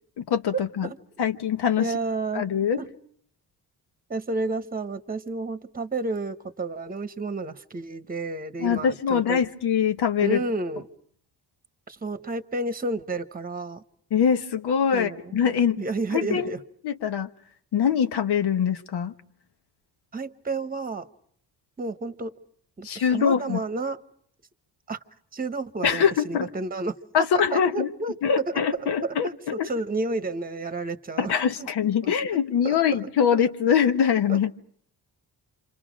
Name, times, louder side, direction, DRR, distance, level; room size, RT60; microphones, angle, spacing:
voice 1, 0.2-0.9 1.2-1.9 2.3-2.8 8.6-10.4 14.1-15.8 16.1-16.5 16.8-17.3 17.7-19.1 22.8-23.6 25.8-26.5 27.1-27.9 28.2-29.7 31.2-34.5, left 7 dB, 85° left, 9 dB, 1.3 m, -23 dB
voice 2, 1.8-2.5 2.8-2.9 4.1-9.4 10.2-10.9 11.9-13.8 14.9-15.4 15.8-16.6 20.1-21.1 21.8-22.4 22.8-24.0 24.9-25.0 25.3-26.9 27.5-28.5 28.8-31.7 32.0-32.1 32.6-33.4 34.3-34.5, right 3 dB, 20° right, 10 dB, 1.1 m, -31 dB
29.0 x 26.0 x 5.2 m, 0.64 s
cardioid pair, 115°, 39 cm